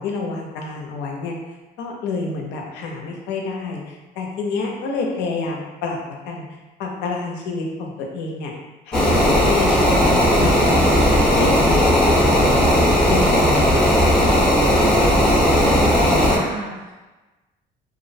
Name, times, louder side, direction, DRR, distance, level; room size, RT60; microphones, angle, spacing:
voice 1, 0.0-1.4 1.8-6.0 6.3-8.5 8.9-10.8 11.1-14.5, left 4 dB, 90° left, 1 dB, 0.5 m, -28 dB
sound 1, 8.9-16.4, equal, 5° left, 0.4 m, -16 dB
voice 2, 14.7-16.9, right 2 dB, 75° right, -6 dB, 0.7 m, -34 dB
2.4 x 2.0 x 2.6 m, 1.1 s
cardioid pair, 110°, 17 cm